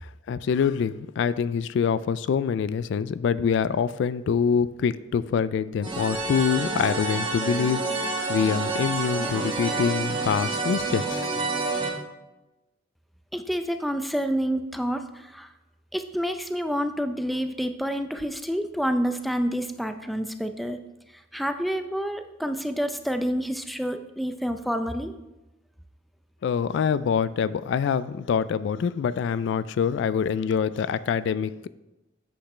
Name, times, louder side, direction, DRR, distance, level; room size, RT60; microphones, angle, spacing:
voice 1, 0.0-11.2 26.4-31.7, left 6 dB, 65° left, 15 dB, 0.3 m, -25 dB
sound 1, 5.8-11.9, right 3 dB, 25° right, 1.3 m, -28 dB
voice 2, 13.3-15.5 15.9-20.8 21.1-25.1, equal, ahead, 7 dB, 0.4 m, -28 dB
8.5 x 8.0 x 3.2 m, 0.99 s
head